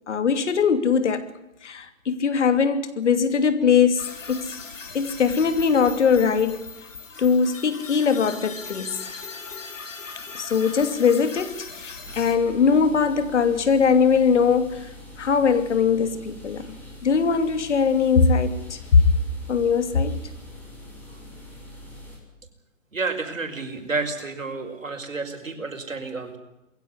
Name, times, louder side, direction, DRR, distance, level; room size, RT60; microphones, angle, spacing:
voice 1, 0.1-1.2 1.6-4.6 4.9-6.7 7.2-9.2 10.3-14.9 15.2-19.0 19.5-20.2, left 6 dB, 65° left, 2.9 m, -21 dB
sound 1, 4.0-12.3, left 4 dB, 80° left, 4.5 m, -39 dB
sound 2, 12.0-22.2, left 1 dB, 5° left, 6.6 m, -43 dB
voice 2, 22.9-26.4, right 3 dB, 90° right, 5.7 m, -30 dB
22.5 x 16.5 x 9.6 m
hypercardioid pair, 145°, 38 cm